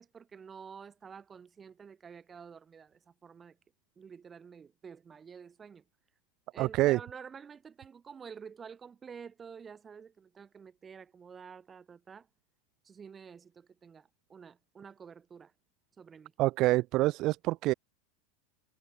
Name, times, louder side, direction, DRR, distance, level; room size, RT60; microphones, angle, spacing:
voice 1, 0.0-3.6 4.0-5.8 6.5-12.3 12.8-15.5 16.0-16.3, right 6 dB, 15° right, 3.0 m, -49 dB
voice 2, 6.6-7.0 16.4-17.7, right 18 dB, 40° right, 0.5 m, -26 dB
supercardioid pair, 160°, 0 cm